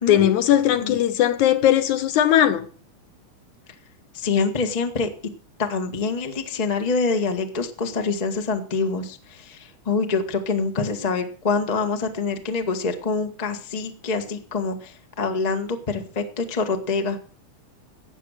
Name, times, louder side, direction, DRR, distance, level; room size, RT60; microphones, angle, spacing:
voice 1, 0.1-2.7, left 11 dB, 75° left, 2.3 m, -18 dB
voice 2, 4.1-5.1 5.6-17.2, left 4 dB, 45° left, 0.5 m, -25 dB
14.0 x 8.9 x 6.5 m
omnidirectional pair, 3.7 m